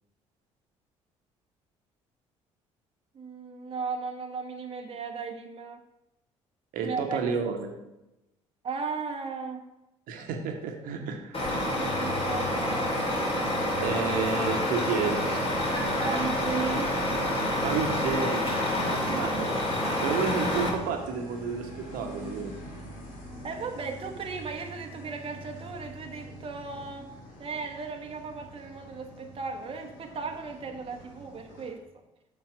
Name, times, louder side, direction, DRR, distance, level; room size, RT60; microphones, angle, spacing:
voice 1, 3.1-5.8 6.8-7.2 8.6-9.6 11.5-13.3 16.0-17.1 19.1-19.3 23.4-27.1 27.4-31.8, right 4 dB, 35° right, 3 dB, 1.1 m, -36 dB
voice 2, 6.7-7.7 10.1-11.5 13.8-15.4 17.6-19.5 20.0-22.5, right 5 dB, 60° right, 3 dB, 1.2 m, -31 dB
Truck, 11.3-20.7, left 1 dB, 35° left, 2.8 m, -28 dB
sound 1, 18.7-31.7, equal, 60° left, 2.5 m, -45 dB
7.2 x 5.3 x 6.0 m, 0.95 s
figure-of-eight pair, 50°, 16 cm